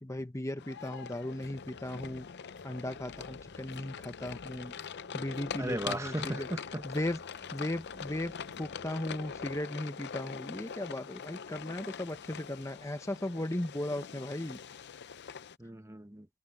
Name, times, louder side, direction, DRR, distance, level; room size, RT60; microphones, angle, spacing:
voice 1, 0.0-2.3 2.6-4.7 5.1-6.5 6.8-7.2 7.5-14.6, left 1 dB, 15° left, 0.9 m, -37 dB
sound 1, 0.6-15.6, left 6 dB, 50° left, 0.6 m, -43 dB
sound 2, 1.9-9.7, right 1 dB, 35° right, 2.0 m, -60 dB
voice 2, 5.6-7.0 15.6-16.3, right 1 dB, 15° right, 1.0 m, -37 dB
head